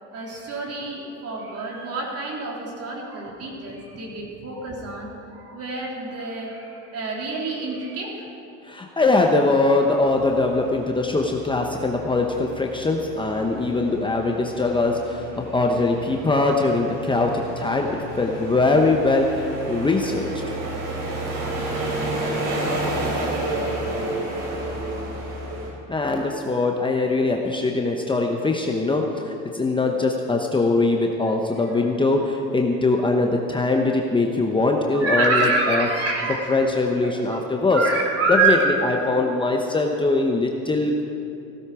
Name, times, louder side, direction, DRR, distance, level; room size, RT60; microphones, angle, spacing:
voice 1, 0.1-8.3 31.3-31.4 31.7-31.8 34.9-36.5 37.0-37.4 37.7-38.6, right 3 dB, 40° right, -2 dB, 3.6 m, -27 dB
voice 2, 8.6-17.3 17.6-20.3 25.9-35.9 36.5-37.8 38.3-41.0, left 3 dB, 15° left, 1 dB, 0.9 m, -22 dB
sound 1, 9.9-25.7, right 1 dB, 80° right, 4.2 m, -31 dB
16.0 x 13.5 x 4.9 m, 2.9 s
supercardioid pair, 115°, 37 cm